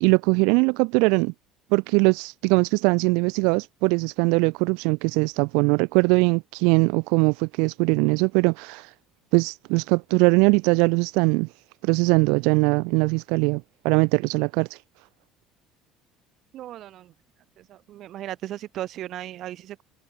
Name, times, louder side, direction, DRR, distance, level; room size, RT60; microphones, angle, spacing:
voice 1, 0.0-1.3 1.7-8.9 9.3-11.5 11.8-14.8, right 32 dB, 75° right, 0.5 m, -21 dB
voice 2, 16.5-17.1 17.6-19.8, right 13 dB, 40° right, 2.4 m, -36 dB
cardioid pair, 175°, 0 cm